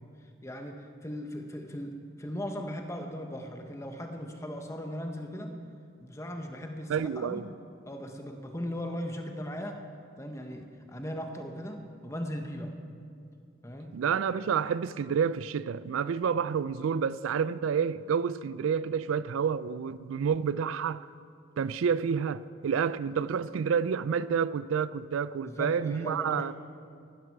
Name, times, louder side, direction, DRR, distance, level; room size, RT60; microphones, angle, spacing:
voice 1, 0.4-5.5 6.0-7.4 7.9-9.8 10.2-12.7 13.6-14.0 16.3-16.4 25.4-26.5, equal, 15° left, 1.0 m, -38 dB
voice 2, 6.9-7.5 13.9-21.1 21.6-26.5, right 6 dB, 85° right, 0.4 m, -29 dB
15.5 x 12.5 x 4.6 m
head